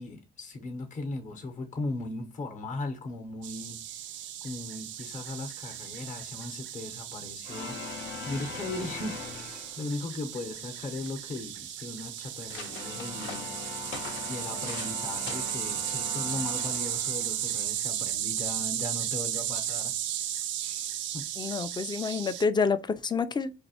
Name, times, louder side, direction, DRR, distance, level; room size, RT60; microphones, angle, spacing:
voice 1, 0.0-4.0 4.4-20.3 20.6-21.3, left 2 dB, 40° left, 0.8 m, -38 dB
sound 1, 3.4-22.4, right 11 dB, 70° right, 0.4 m, -35 dB
sound 2, 7.4-10.2 12.5-17.7, left 5 dB, 70° left, 0.6 m, -41 dB
sound 3, 10.4-10.5 10.7-11.3 11.9-12.0 12.3-15.0 15.3-15.7 16.4-16.7, left 5 dB, 90° left, 0.9 m, -44 dB
voice 2, 21.4-23.5, left 5 dB, 20° left, 0.4 m, -28 dB
4.2 x 2.7 x 2.8 m
cardioid pair, 90°, 20 cm